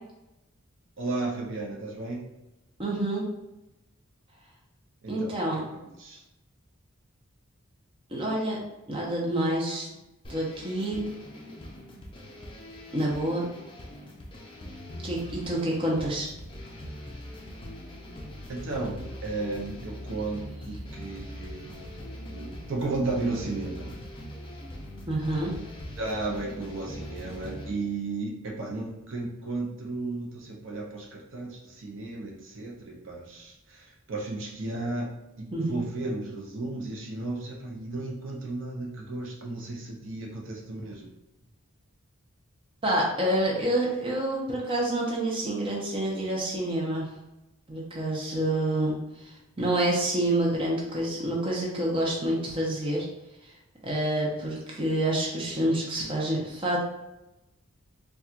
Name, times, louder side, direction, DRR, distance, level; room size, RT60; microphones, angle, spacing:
voice 1, 1.0-2.3 5.0-6.2 18.5-23.9 26.0-41.1, right 2 dB, 60° right, -1 dB, 0.6 m, -34 dB
voice 2, 2.8-3.3 5.1-5.6 8.1-8.6 8.9-9.9 10.3-11.1 12.9-13.5 15.0-16.3 25.1-25.5 35.5-35.8 42.8-47.1 47.7-53.1 53.4-53.5 53.8-56.8, right 1 dB, 25° right, -3 dB, 0.7 m, -28 dB
sound 1, 10.2-27.7, left 1 dB, 25° left, 0.5 m, -42 dB
4.2 x 2.3 x 2.4 m, 0.94 s
head